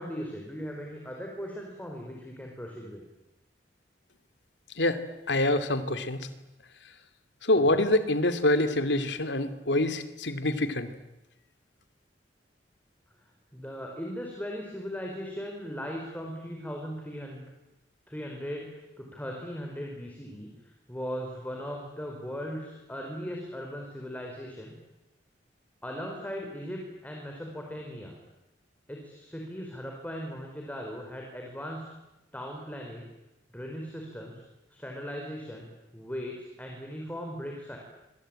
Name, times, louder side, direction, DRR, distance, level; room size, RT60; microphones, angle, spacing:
voice 1, 0.0-3.0 13.5-17.5 18.1-24.7 25.8-28.1 28.9-31.8 32.3-33.1 33.5-34.3 34.7-37.8, equal, 10° left, 1 dB, 4.7 m, -38 dB
voice 2, 5.3-6.3 7.4-10.9, left 1 dB, 80° left, 9 dB, 2.6 m, -25 dB
26.5 x 25.0 x 9.0 m, 0.97 s
head